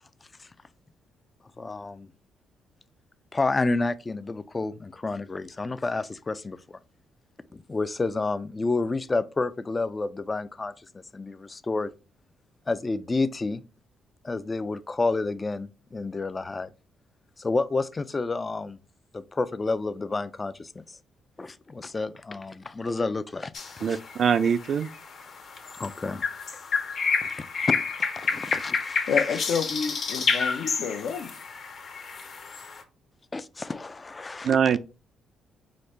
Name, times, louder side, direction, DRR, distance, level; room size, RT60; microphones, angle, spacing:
voice 1, 1.6-2.1 3.3-6.8 7.5-11.9 12.7-13.6 14.2-16.7 17.4-18.8 19.1-21.0 21.4-23.5 23.8-24.0 25.8-26.2 27.2-29.4 30.1-30.2 33.3-34.5, left 3 dB, 25° left, 0.3 m, -30 dB
sound 1, 23.5-32.8, left 5 dB, 50° left, 1.0 m, -30 dB
voice 2, 23.8-24.9 34.4-34.8, right 7 dB, 60° right, 0.3 m, -23 dB
voice 3, 29.1-31.3, left 6 dB, 70° left, 0.6 m, -29 dB
5.0 x 2.1 x 4.3 m
cardioid pair, 90°, 0 cm